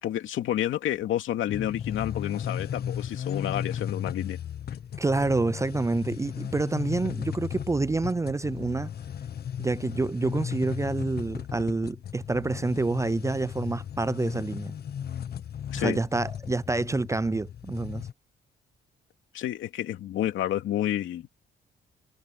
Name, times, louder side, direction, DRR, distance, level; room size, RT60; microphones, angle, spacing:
voice 1, 0.0-4.4 15.7-16.0 19.3-21.3, left 12 dB, 80° left, 2.7 m, -30 dB
sound 1, 1.5-18.1, left 9 dB, 50° left, 1.0 m, -36 dB
voice 2, 5.0-8.9 9.6-14.7 15.8-18.0, right 3 dB, 15° right, 0.4 m, -28 dB
cardioid pair, 90°, 20 cm